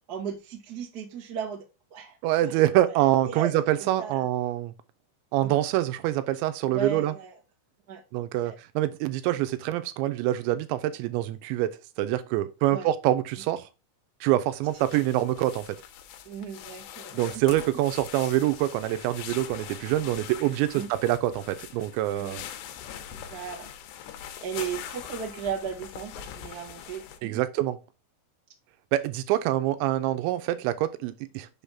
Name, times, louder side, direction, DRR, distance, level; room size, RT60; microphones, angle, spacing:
voice 1, 0.1-1.6 1.9-2.2 2.4-2.6 3.3-3.5 3.8-4.2 5.4-5.6 6.6-7.4 7.9-8.0 8.4-8.5 12.7-12.9 16.2-17.8 20.7-20.9 22.1-22.4 23.1-23.7 24.4-27.4, right 7 dB, 65° right, 0.9 m, -36 dB
voice 2, 2.2-4.7 5.3-7.2 8.1-13.7 14.2-15.7 17.1-22.4 27.2-27.8 28.9-31.5, right 14 dB, 85° right, 3.0 m, -25 dB
sound 1, 14.6-27.2, left 10 dB, 90° left, 2.9 m, -42 dB
6.8 x 3.5 x 5.6 m
omnidirectional pair, 5.1 m